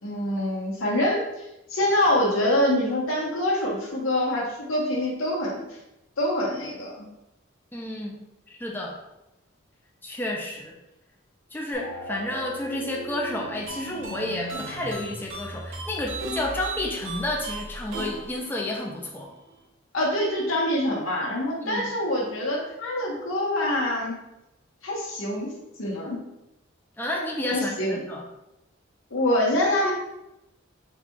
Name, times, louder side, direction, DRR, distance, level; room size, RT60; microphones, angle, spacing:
voice 1, 0.0-5.8 6.2-7.1 19.9-24.2 24.8-25.5 25.8-26.2 27.5-28.0 29.1-29.9, left 1 dB, 85° left, -2 dB, 1.1 m, -25 dB
voice 2, 7.7-8.2 8.6-9.0 10.0-10.7 11.5-19.3 21.6-21.9 27.0-28.2, left 1 dB, 10° left, -2 dB, 0.5 m, -31 dB
sound 1, 11.7-18.4, equal, 50° left, 0.8 m, -40 dB
sound 2, 13.7-19.5, right 2 dB, 75° right, 0.8 m, -38 dB
4.1 x 2.3 x 4.5 m, 0.92 s
head